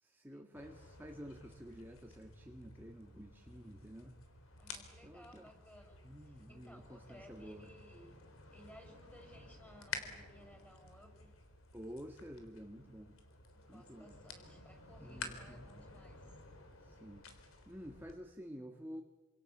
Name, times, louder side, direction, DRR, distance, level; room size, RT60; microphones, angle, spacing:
voice 1, 0.0-4.2 5.0-5.5 6.0-7.7 11.7-13.1 13.7-14.2 15.0-15.7 16.8-19.0, equal, 10° right, 3 dB, 1.7 m, -51 dB
sound 1, 0.5-18.2, left 4 dB, 75° left, 3.7 m, -52 dB
voice 2, 4.6-8.2 8.5-11.3 13.5-16.4, equal, 10° left, 4 dB, 6.7 m, -60 dB
27.5 x 26.5 x 7.2 m, 1.1 s
head